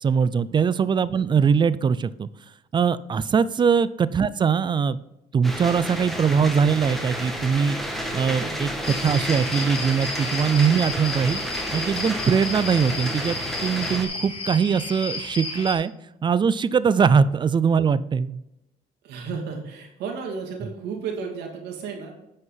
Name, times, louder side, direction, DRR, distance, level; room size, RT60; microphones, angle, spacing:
voice 1, 0.0-2.3 2.7-5.0 5.3-7.8 8.1-11.4 11.7-15.9 16.2-18.4, right 6 dB, 25° right, 17 dB, 0.4 m, -21 dB
sound 1, 5.4-14.0, equal, ahead, 1.6 m, -31 dB
voice 2, 8.2-8.5 10.5-10.8 19.0-22.1, right 5 dB, 85° right, 1 dB, 2.6 m, -34 dB
sound 2, 8.8-15.7, left 3 dB, 30° left, 2.5 m, -33 dB
9.3 x 5.5 x 5.6 m, 0.89 s
cardioid pair, 110°, 17 cm